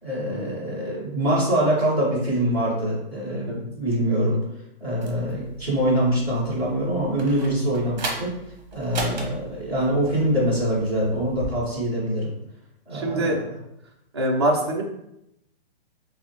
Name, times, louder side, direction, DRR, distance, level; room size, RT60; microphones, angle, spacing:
voice 1, 0.0-4.4 4.8-8.4 8.7-12.3 12.9-13.3, right 1 dB, 5° left, -10 dB, 0.7 m, -24 dB
sound 1, 5.0-11.5, right 3 dB, 45° right, 0.8 m, -37 dB
voice 2, 12.9-13.4 14.1-14.8, right 1 dB, 30° right, -1 dB, 0.4 m, -24 dB
6.0 x 2.0 x 2.8 m, 0.82 s
hypercardioid pair, 175°, 31 cm